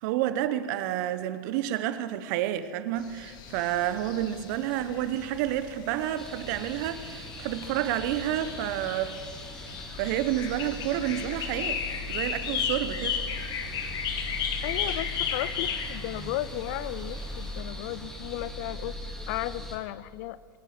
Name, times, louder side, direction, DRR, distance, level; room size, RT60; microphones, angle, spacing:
voice 1, 0.0-9.2 10.0-11.8 12.1-13.2, right 12 dB, 55° right, 1.0 m, -29 dB
sound 1, 3.0-17.6, left 7 dB, 40° left, 1.6 m, -36 dB
sound 2, 6.2-19.8, left 1 dB, 5° left, 3.4 m, -40 dB
voice 2, 14.6-20.4, left 14 dB, 55° left, 0.6 m, -35 dB
23.5 x 9.2 x 6.1 m
hypercardioid pair, 110°, 11 cm